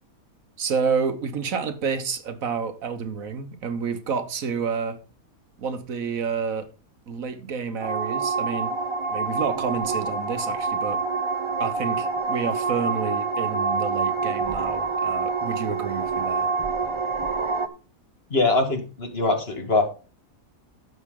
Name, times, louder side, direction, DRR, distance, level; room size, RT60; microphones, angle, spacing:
voice 1, 0.6-5.0 5.6-6.7 7.1-8.7 9.1-11.0 11.6-16.5, right 5 dB, 70° right, 1.5 m, -29 dB
sound 1, 7.8-17.7, right 4 dB, 35° right, 0.5 m, -26 dB
voice 2, 18.3-19.8, left 3 dB, 45° left, 1.8 m, -22 dB
11.5 x 7.4 x 3.7 m
omnidirectional pair, 1.5 m